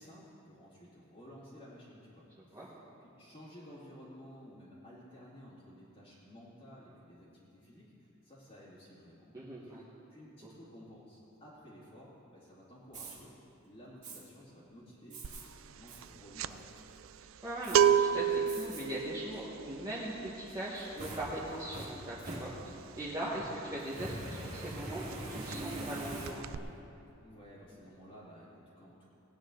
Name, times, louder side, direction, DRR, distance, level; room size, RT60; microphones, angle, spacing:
voice 1, 0.0-9.8 10.1-13.3 13.6-16.9 27.2-29.1, equal, 30° left, -12 dB, 2.5 m, -54 dB
voice 2, 9.3-9.8 10.4-10.5 17.4-20.1 20.5-22.5 22.9-26.4, right 1 dB, 20° right, -8 dB, 1.6 m, -40 dB
Fire, 12.9-13.2 14.0-14.2 15.1-15.4 15.9-16.0 16.5-17.0 17.6-17.8 18.5-18.8 19.3-19.4 20.5-23.0 23.8-26.7, right 1 dB, 35° right, 2.3 m, -43 dB
sound 1, 15.2-15.5 15.8-24.4 24.6-24.9 25.1-26.0 26.2-26.6, right 8 dB, 70° right, 0.4 m, -31 dB
19.0 x 9.5 x 3.9 m, 2.9 s
head